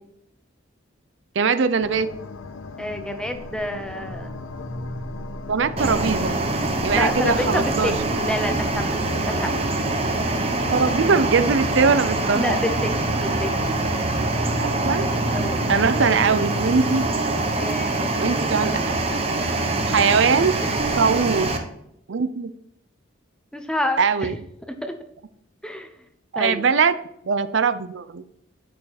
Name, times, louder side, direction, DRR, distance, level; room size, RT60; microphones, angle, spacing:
voice 1, 1.4-2.1 5.5-6.4 6.8-7.9 10.7-12.4 14.6-15.1 15.7-17.0 18.2-19.0 19.9-20.6 21.0-21.5 22.1-22.5 24.0-24.4 26.3-26.9 27.3-28.2, right 5 dB, 70° right, 12 dB, 0.5 m, -21 dB
sound 1, 1.8-17.1, left 4 dB, 85° left, 0.6 m, -38 dB
voice 2, 2.8-4.3 6.9-9.6 12.3-13.5 15.3-15.6 17.5-18.3 19.4-19.7 20.6-20.9 23.5-24.4 24.8-24.9 25.6-25.9 26.3-26.6, left 1 dB, 5° left, 6 dB, 0.8 m, -28 dB
sound 2, 3.3-9.1, right 1 dB, 50° left, 1.5 m, -39 dB
sound 3, 5.8-21.6, right 2 dB, 30° right, 1.1 m, -24 dB
8.9 x 6.4 x 4.1 m, 0.76 s
head